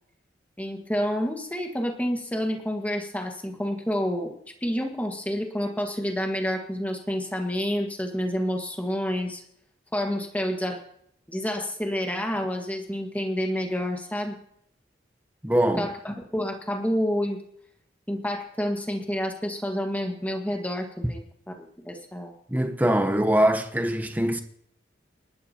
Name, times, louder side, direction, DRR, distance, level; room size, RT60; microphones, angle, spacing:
voice 1, 0.6-9.4 9.9-10.8 11.3-14.4 15.8-17.4 18.1-22.3, equal, 10° left, 1.6 m, -29 dB
voice 2, 15.4-15.9 22.5-24.4, right 1 dB, 10° right, 0.9 m, -23 dB
29.0 x 12.0 x 2.9 m
head